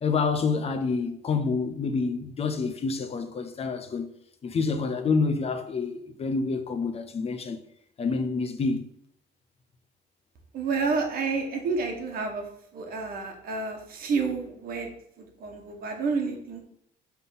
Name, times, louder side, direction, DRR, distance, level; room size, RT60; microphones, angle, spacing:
voice 1, 0.0-4.1 4.4-7.6 8.0-8.8, left 4 dB, 35° left, 0.7 m, -28 dB
voice 2, 10.5-12.4 12.7-14.9 15.2-16.6, right 4 dB, 60° right, 1.6 m, -29 dB
5.8 x 3.8 x 5.8 m
cardioid pair, 110°, 17 cm